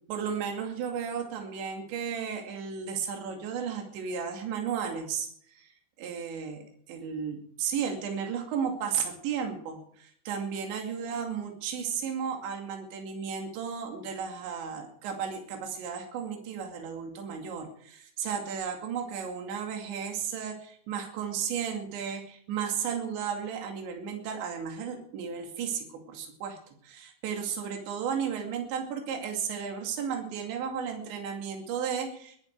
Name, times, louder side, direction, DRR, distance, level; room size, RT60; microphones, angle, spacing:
voice 1, 0.1-5.7 6.0-26.6 26.8-32.4, right 7 dB, 70° right, 3 dB, 4.6 m, -34 dB
21.0 x 12.0 x 4.6 m, 0.62 s
omnidirectional pair, 5.5 m